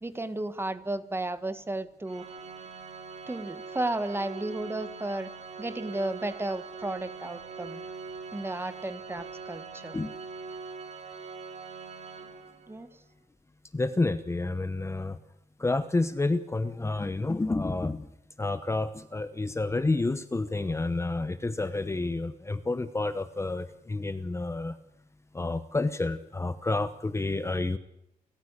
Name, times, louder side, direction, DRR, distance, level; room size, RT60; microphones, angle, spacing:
voice 1, 0.0-2.3 3.3-5.3 5.6-7.8 8.3-10.0 12.7-12.9, right 2 dB, 15° right, 12 dB, 1.6 m, -33 dB
Organ, 2.1-12.9, right 5 dB, 50° right, 4.0 m, -42 dB
voice 2, 13.7-15.2 15.6-18.1 18.4-24.7 25.3-27.8, left 2 dB, 20° left, 12 dB, 1.0 m, -29 dB
30.0 x 14.5 x 8.4 m, 0.83 s
wide cardioid pair, 135°, 15 cm